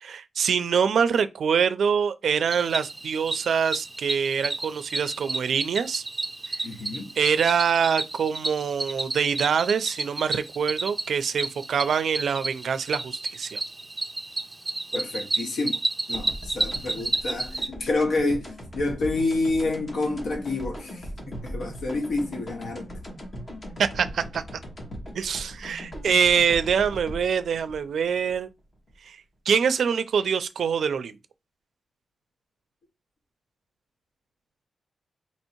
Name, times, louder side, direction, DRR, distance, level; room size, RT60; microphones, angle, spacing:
voice 1, 0.0-6.0 6.5-6.6 7.2-13.6 23.8-24.4 25.1-28.5 29.1-29.2 29.5-31.2, right 7 dB, 70° right, 0.4 m, -24 dB
Cricket, 2.5-17.7, right 2 dB, 15° right, 0.5 m, -31 dB
voice 2, 6.6-7.1 14.9-15.8 16.1-21.1 21.4-22.9, left 2 dB, 70° left, 0.8 m, -28 dB
sound 1, 16.1-28.9, equal, 30° left, 1.1 m, -39 dB
2.9 x 2.7 x 4.3 m
wide cardioid pair, 150°, 0 cm